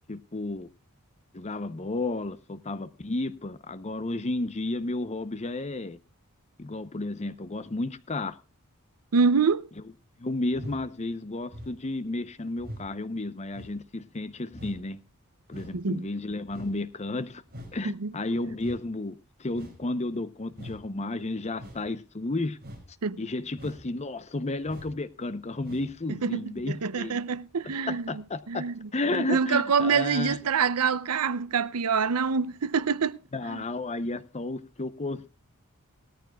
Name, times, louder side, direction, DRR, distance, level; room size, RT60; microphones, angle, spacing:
voice 1, 0.1-0.7 1.3-6.0 6.6-8.4 10.2-15.0 15.5-17.4 17.7-22.6 23.2-27.2 27.6-28.6 28.9-30.4 33.3-35.3, left 2 dB, 30° left, 0.7 m, -32 dB
voice 2, 9.1-9.6 15.7-16.0 17.8-18.1 23.0-23.2 26.2-33.2 33.5-33.6, right 5 dB, 90° right, 0.6 m, -26 dB
sound 1, 10.5-10.8 11.5-11.8 12.6-12.9 13.5-13.8 14.5-14.8 15.5-15.8 16.5-16.8 17.5-17.8 18.6-18.8 19.5-19.8 20.5-20.8 21.5-21.9 22.6-22.9 23.5-23.9 24.6-25.0 25.6-25.9 26.5-26.6, equal, 45° right, 5.2 m, -43 dB
18.5 x 13.5 x 2.3 m
head